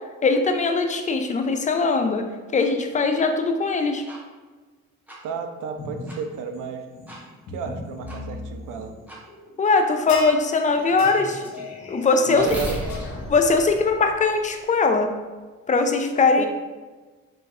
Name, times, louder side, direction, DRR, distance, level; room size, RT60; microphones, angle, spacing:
voice 1, 0.2-2.3 2.5-4.0 9.6-11.4 11.9-12.5 13.3-15.1 15.7-16.5, left 4 dB, 20° left, 5 dB, 0.4 m, -21 dB
sound 1, 4.1-4.2 5.1-5.2 6.1-6.2 7.1-7.2 8.1-8.2 9.1-9.2 10.1-10.2 10.8-14.6, equal, 5° right, 1.0 m, -36 dB
voice 2, 5.2-6.9 7.5-8.9 12.3-12.8 16.4-16.5, right 6 dB, 60° right, 6 dB, 0.5 m, -32 dB
sound 2, 5.8-6.2 6.5-13.4, left 3 dB, 45° left, 0.8 m, -40 dB
sound 3, 10.1-10.5 11.0-11.2 12.9-13.0, left 3 dB, 90° left, 0.5 m, -32 dB
3.8 x 2.5 x 2.6 m, 1.3 s
hypercardioid pair, 45°, 36 cm